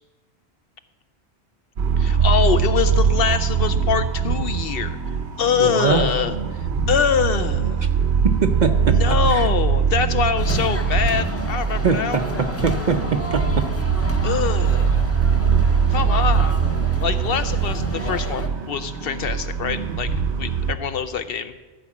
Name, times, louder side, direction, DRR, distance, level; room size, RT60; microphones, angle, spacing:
sound 1, 1.8-20.8, right 6 dB, 70° right, 1.1 m, -22 dB
voice 1, 2.0-7.9 8.9-12.2 14.2-15.0 15.9-16.6 17.0-20.1 20.4-21.5, left 7 dB, 65° left, 11 dB, 0.7 m, -24 dB
voice 2, 5.6-6.1 8.4-9.0 9.3-9.5 11.8-12.2 12.6-13.0 13.3-13.6, right 5 dB, 50° right, 6 dB, 0.6 m, -21 dB
sound 2, 10.4-18.5, left 1 dB, 20° left, 0.4 m, -31 dB
14.0 x 4.7 x 7.2 m, 1.3 s
omnidirectional pair, 1.2 m